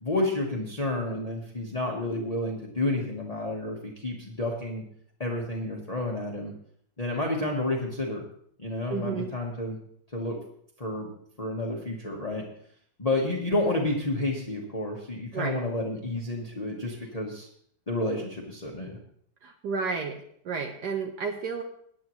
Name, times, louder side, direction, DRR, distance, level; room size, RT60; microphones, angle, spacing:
voice 1, 0.0-4.8 5.2-6.5 7.0-8.2 8.6-9.8 10.1-10.3 10.8-11.1 11.4-12.4 13.0-17.5 17.9-19.0, left 2 dB, 25° left, -2 dB, 1.3 m, -30 dB
voice 2, 8.9-9.3 15.3-15.6 19.4-21.6, right 5 dB, 70° right, 4 dB, 1.4 m, -32 dB
18.0 x 9.9 x 3.1 m, 0.65 s
omnidirectional pair, 1.9 m